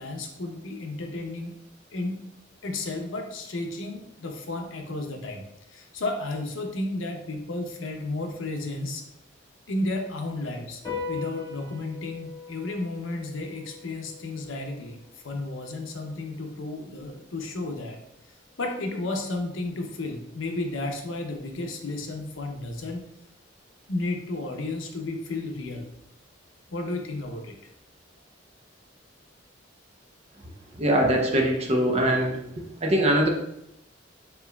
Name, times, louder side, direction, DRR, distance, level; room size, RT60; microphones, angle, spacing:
voice 1, 0.0-1.5 1.9-2.2 2.6-5.4 5.7-9.0 9.7-10.8 11.1-18.0 18.6-23.1 23.9-25.9 26.7-27.7, left 2 dB, 90° left, 3 dB, 0.7 m, -33 dB
sound 1, 10.8-17.6, left 4 dB, 20° left, 1.5 m, -41 dB
voice 2, 30.8-32.4 32.8-33.3, right 1 dB, 35° right, 2 dB, 0.6 m, -22 dB
4.4 x 3.9 x 2.2 m, 0.81 s
head